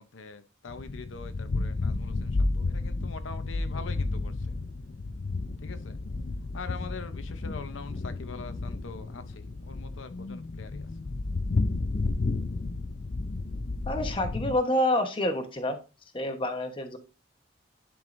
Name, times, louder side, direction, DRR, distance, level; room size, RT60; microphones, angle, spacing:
voice 1, 0.0-4.5 5.6-6.0 6.5-10.9, left 4 dB, 85° left, 0.7 m, -43 dB
sound 1, 0.7-14.6, left 3 dB, 45° left, 0.4 m, -32 dB
voice 2, 13.9-15.8 16.1-17.0, left 1 dB, 25° left, 1.0 m, -28 dB
10.5 x 4.7 x 2.6 m
head